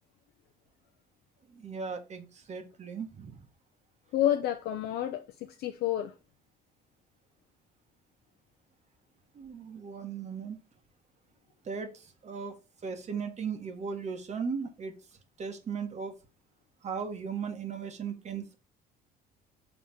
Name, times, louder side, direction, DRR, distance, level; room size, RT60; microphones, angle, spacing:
voice 1, 1.5-3.4 9.3-10.6 11.6-12.5 12.8-14.9 15.4-16.1 16.8-18.5, right 6 dB, 40° right, 1.6 m, -37 dB
voice 2, 4.1-6.1, left 12 dB, 75° left, 0.7 m, -29 dB
5.7 x 3.8 x 5.9 m
cardioid pair, 110°, 17 cm